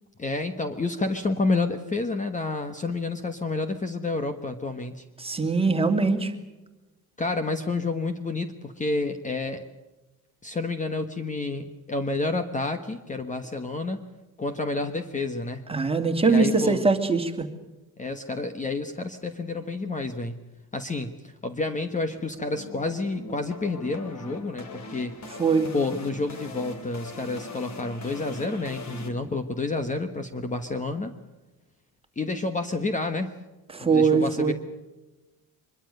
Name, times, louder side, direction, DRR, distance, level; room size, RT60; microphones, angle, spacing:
voice 1, 0.2-5.0 7.2-9.6 10.4-14.1 14.4-15.6 16.2-16.8 18.0-20.4 20.7-25.2 25.7-31.1 32.2-33.3 33.8-34.5, left 3 dB, 20° left, 8 dB, 1.2 m, -29 dB
voice 2, 5.2-6.3 15.7-17.5 25.4-25.7 33.7-34.5, right 4 dB, 15° right, 5 dB, 2.4 m, -22 dB
sound 1, 22.2-29.1, left 3 dB, 45° left, 3.7 m, -41 dB
24.5 x 22.5 x 6.7 m, 1.1 s
cardioid pair, 175°, 37 cm